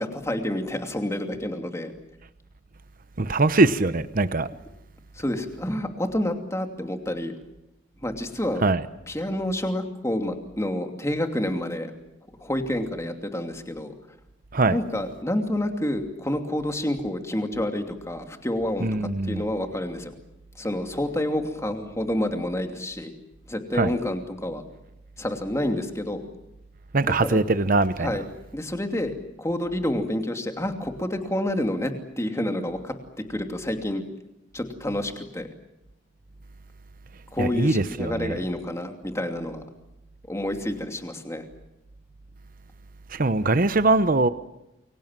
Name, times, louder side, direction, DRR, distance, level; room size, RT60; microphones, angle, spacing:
voice 1, 0.0-1.9 5.2-7.3 8.0-8.6 9.1-11.9 12.4-13.9 14.7-20.1 20.6-23.1 23.5-24.6 25.2-26.2 27.3-27.4 28.0-28.2 28.5-32.9 33.3-34.0 34.5-35.5 37.3-39.6 40.3-41.5, left 1 dB, 15° left, 2.7 m, -28 dB
voice 2, 3.2-4.5 8.6-8.8 14.5-14.8 18.8-19.4 23.7-23.9 26.9-28.1 37.4-38.4 43.1-44.3, right 2 dB, 45° right, 0.9 m, -22 dB
28.5 x 23.5 x 7.5 m
head